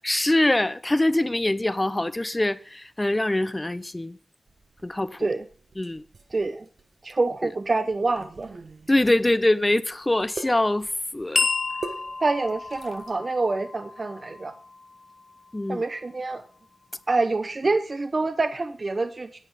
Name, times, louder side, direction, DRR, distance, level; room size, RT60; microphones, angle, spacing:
voice 1, 0.0-4.2 4.8-5.3 5.8-6.0 7.4-7.5 8.9-11.5 15.5-15.8, left 1 dB, 20° left, 0.7 m, -24 dB
sound 1, 4.5-13.2, right 3 dB, 70° right, 1.3 m, -44 dB
voice 2, 6.3-6.7 7.0-8.5 12.2-14.5 15.7-16.4 17.1-19.4, right 3 dB, 50° right, 0.8 m, -26 dB
sound 2, 11.4-16.0, left 4 dB, 55° left, 1.1 m, -32 dB
9.9 x 8.3 x 5.0 m
cardioid pair, 50°, 0 cm